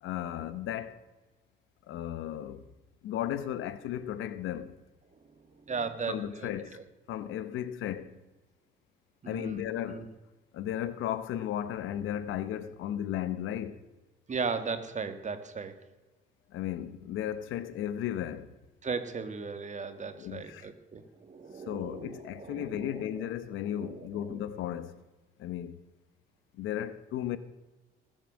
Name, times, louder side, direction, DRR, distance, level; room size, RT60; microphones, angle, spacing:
voice 1, 0.0-1.0 1.9-2.7 3.0-4.8 6.1-6.8 7.1-8.1 9.3-10.1 10.5-13.8 16.5-18.5 20.2-20.7 21.7-25.0 25.4-25.8 26.6-27.4, left 11 dB, 90° left, 1.0 m, -35 dB
voice 2, 5.7-6.8 9.2-9.6 9.9-10.1 14.3-15.8 18.8-23.0 23.8-24.4, right 5 dB, 35° right, 1.9 m, -37 dB
20.0 x 7.8 x 6.4 m
cardioid pair, 90°, 20 cm